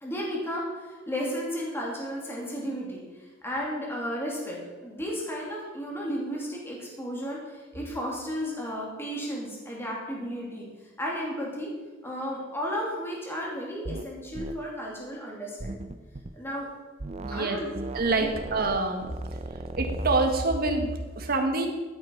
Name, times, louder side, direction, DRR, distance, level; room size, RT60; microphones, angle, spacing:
voice 1, 0.0-3.0 3.4-10.7 11.0-11.7 12.0-15.9 16.3-16.7 17.3-17.7 18.2-18.3, equal, 10° left, -3 dB, 2.6 m, -33 dB
sound 1, 13.8-14.1 14.3-14.6 15.6-16.3 17.0-17.5 17.7-20.2, right 2 dB, 35° right, 0.6 m, -37 dB
voice 2, 17.2-17.6 17.9-19.0 19.8-21.7, right 2 dB, 50° right, 4 dB, 1.5 m, -26 dB
13.5 x 8.4 x 4.6 m, 1.3 s
head